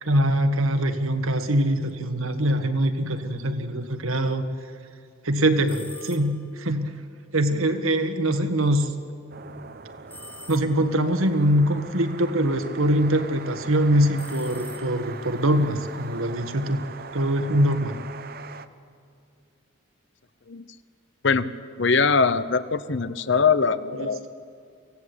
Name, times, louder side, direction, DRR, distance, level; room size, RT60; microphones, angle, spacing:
voice 1, 0.0-4.5 5.2-7.0 7.3-8.9 10.5-16.8 17.1-18.0 23.9-24.1, right 1 dB, 80° right, 8 dB, 1.6 m, -23 dB
sound 1, 5.6-6.6 10.1-11.1 14.1-15.3, left 2 dB, 10° left, 1.1 m, -45 dB
sound 2, 9.3-18.7, right 4 dB, 45° right, 0.8 m, -41 dB
voice 2, 21.8-24.3, left 5 dB, 55° left, 14 dB, 0.7 m, -22 dB
24.5 x 17.0 x 8.4 m, 2.4 s
head